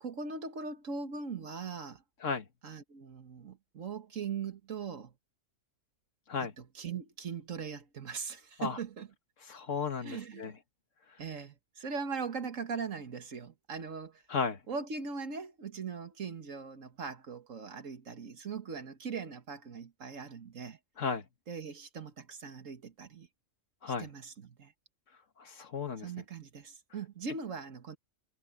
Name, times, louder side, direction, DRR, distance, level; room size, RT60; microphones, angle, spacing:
voice 1, 0.0-2.0 2.6-5.1 6.4-9.1 10.0-10.5 11.2-14.2 14.7-20.8 21.5-23.3 24.0-24.7 26.0-28.0, right 5 dB, 80° right, 2.0 m, -40 dB
voice 2, 9.5-10.5 14.3-14.6 21.0-21.2 23.8-24.1 25.4-26.1, left 5 dB, 75° left, 1.9 m, -34 dB
omnidirectional pair, 1.3 m